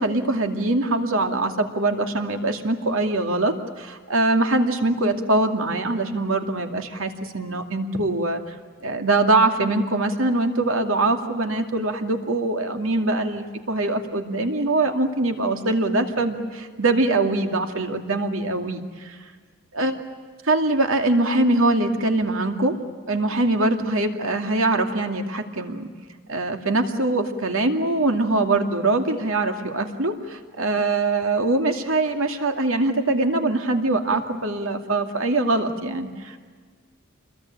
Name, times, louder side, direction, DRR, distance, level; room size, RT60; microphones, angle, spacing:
voice 1, 0.0-8.6 8.8-19.2 19.7-20.0 20.4-22.7 23.1-25.9 26.3-36.3, right 2 dB, 70° right, 5 dB, 2.5 m, -23 dB
28.0 x 22.0 x 9.0 m, 1.5 s
head